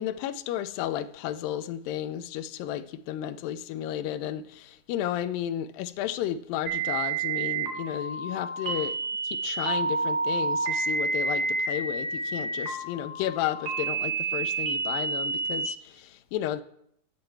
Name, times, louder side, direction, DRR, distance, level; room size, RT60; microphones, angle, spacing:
voice 1, 0.0-9.0 9.2-16.6, left 11 dB, 85° left, 2.3 m, -33 dB
sound 1, 6.7-15.7, right 4 dB, 75° right, 3.6 m, -29 dB
8.7 x 5.9 x 7.6 m
omnidirectional pair, 4.1 m